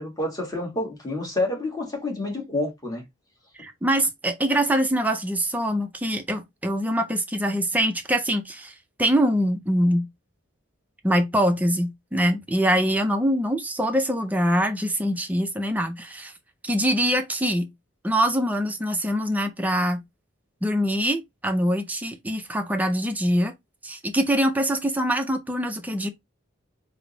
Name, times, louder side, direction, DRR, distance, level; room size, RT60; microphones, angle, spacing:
voice 1, 0.0-3.0, left 2 dB, 20° left, 1.3 m, -28 dB
voice 2, 3.6-8.7 9.0-10.1 11.0-16.3 16.6-17.7 18.0-20.0 20.6-23.5 23.8-26.1, equal, 10° right, 0.4 m, -24 dB
3.4 x 2.0 x 3.8 m
head